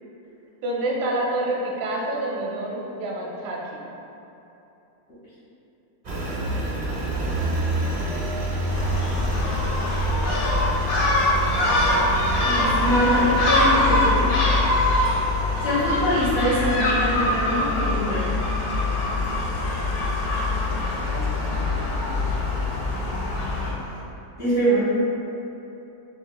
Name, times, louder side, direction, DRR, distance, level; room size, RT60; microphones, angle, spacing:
voice 1, 0.6-3.8 9.3-9.7 20.7-22.1, right 1 dB, 65° right, -2 dB, 0.9 m, -29 dB
Engine, 6.0-24.0, right 2 dB, 45° right, 0.5 m, -31 dB
Gull seagull, 8.7-23.7, left 2 dB, 70° left, 1.1 m, -23 dB
voice 2, 12.4-14.3 15.6-18.2 24.4-24.8, equal, 40° left, -13 dB, 1.4 m, -23 dB
6.4 x 2.8 x 2.2 m, 3.0 s
omnidirectional pair, 1.8 m